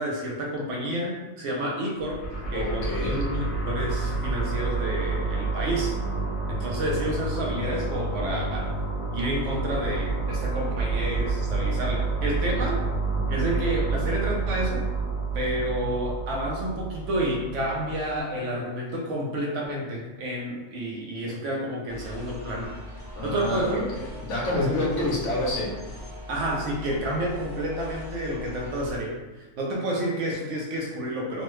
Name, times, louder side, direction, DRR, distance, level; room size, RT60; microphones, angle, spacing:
voice 1, 0.0-6.0 6.5-8.7 9.1-12.8 13.3-14.9 15.3-22.7 23.2-23.9 24.6-25.1 26.3-31.4, right 1 dB, 65° right, -2 dB, 0.9 m, -30 dB
sound 1, 2.0-18.2, right 3 dB, 10° left, 0.5 m, -29 dB
voice 2, 2.5-3.2 23.1-25.9, left 2 dB, 65° left, -3 dB, 1.0 m, -28 dB
sound 2, 21.9-29.0, left 1 dB, 30° right, 0.8 m, -40 dB
3.0 x 2.2 x 3.0 m, 1.1 s
omnidirectional pair, 1.4 m